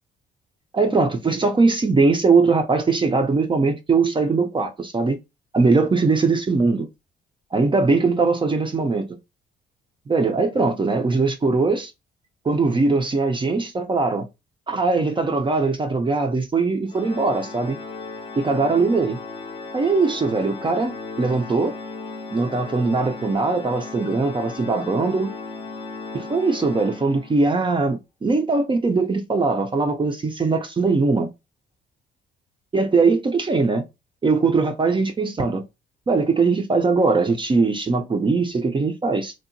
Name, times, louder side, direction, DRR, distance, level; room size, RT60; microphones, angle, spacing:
voice 1, 0.7-5.2 5.5-6.9 7.5-9.2 10.1-11.9 12.5-14.3 14.7-17.8 18.4-19.2 19.7-21.7 22.3-25.3 26.1-31.3 32.7-33.8 34.2-35.6 36.1-39.3, right 3 dB, 25° right, 0.5 m, -21 dB
Organ, 16.9-27.6, left 3 dB, 25° left, 0.5 m, -36 dB
2.7 x 2.2 x 2.5 m
cardioid pair, 90°, 20 cm